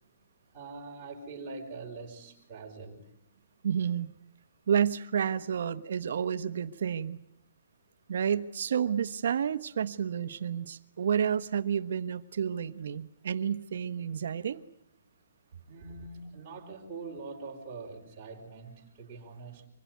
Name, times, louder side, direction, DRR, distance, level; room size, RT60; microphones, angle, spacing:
voice 1, 0.5-3.1 15.7-19.7, right 4 dB, 20° right, -3 dB, 4.6 m, -43 dB
voice 2, 3.6-4.1 4.7-7.2 8.1-14.6, right 8 dB, 55° right, 11 dB, 1.2 m, -30 dB
25.5 x 21.0 x 9.4 m, 0.76 s
hypercardioid pair, 175°, 0 cm